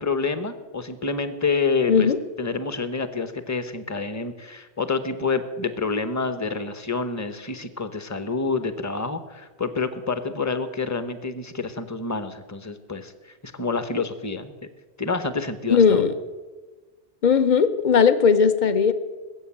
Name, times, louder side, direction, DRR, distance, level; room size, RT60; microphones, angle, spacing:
voice 1, 0.0-2.1 2.4-13.1 13.4-14.5 15.0-16.0, left 4 dB, 15° left, 10 dB, 0.9 m, -28 dB
voice 2, 15.7-16.1 17.2-18.9, left 6 dB, 45° left, 11 dB, 1.0 m, -18 dB
20.5 x 7.8 x 8.8 m, 1.3 s
omnidirectional pair, 1.1 m